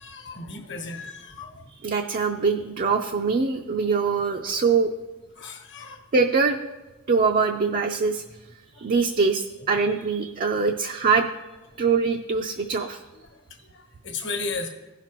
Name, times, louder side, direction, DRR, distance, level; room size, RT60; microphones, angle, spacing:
voice 1, 0.0-1.6 5.3-6.0 8.7-8.9 11.7-11.8 13.3-14.7, left 3 dB, 55° left, 3 dB, 1.2 m, -35 dB
voice 2, 1.8-4.9 6.1-6.6 7.1-8.2 8.8-11.3 11.8-13.0, right 5 dB, 40° right, 4 dB, 0.4 m, -23 dB
15.5 x 5.8 x 3.0 m, 1.2 s
head